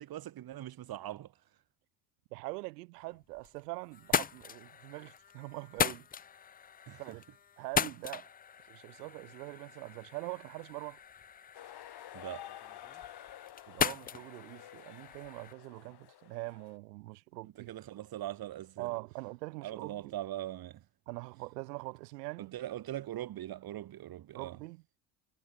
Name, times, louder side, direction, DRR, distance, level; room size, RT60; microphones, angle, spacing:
voice 1, 0.0-1.4 6.9-7.2 12.1-12.5 17.6-18.9 19.6-20.8 22.4-24.6, right 13 dB, 50° right, 1.9 m, -41 dB
voice 2, 2.3-6.1 7.0-7.2 7.6-8.3 8.7-11.0 13.7-17.7 18.8-20.1 21.1-22.5 24.3-24.8, right 23 dB, 90° right, 5.5 m, -43 dB
sound 1, 3.1-3.6 3.9-15.5, left 7 dB, 20° left, 0.5 m, -38 dB
sound 2, 11.5-16.8, left 12 dB, 55° left, 7.1 m, -51 dB
supercardioid pair, 90°, 47 cm